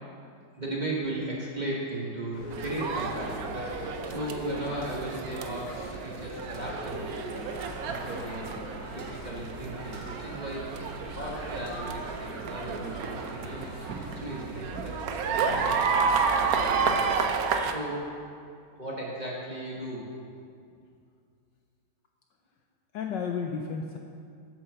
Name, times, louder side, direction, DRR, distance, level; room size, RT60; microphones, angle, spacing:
voice 1, 0.6-7.4 7.9-8.7 8.9-10.7 11.1-13.6 14.0-15.0 15.3-17.2 17.7-18.1 18.8-20.0, right 1 dB, 25° right, -4 dB, 1.5 m, -36 dB
sound 1, 2.3-17.2, equal, 45° left, 2.6 m, -42 dB
sound 2, 2.5-17.7, right 5 dB, 75° right, 0.8 m, -31 dB
sound 3, 4.8-6.2 6.5-6.9 7.6-8.2 8.5-8.6 9.0-9.3 9.9-11.1 11.4-11.9 12.4-13.1, right 2 dB, 50° right, 1.5 m, -51 dB
voice 2, 22.9-24.0, left 6 dB, 70° left, 3 dB, 1.1 m, -33 dB
8.6 x 7.3 x 6.7 m, 2.3 s
omnidirectional pair, 2.3 m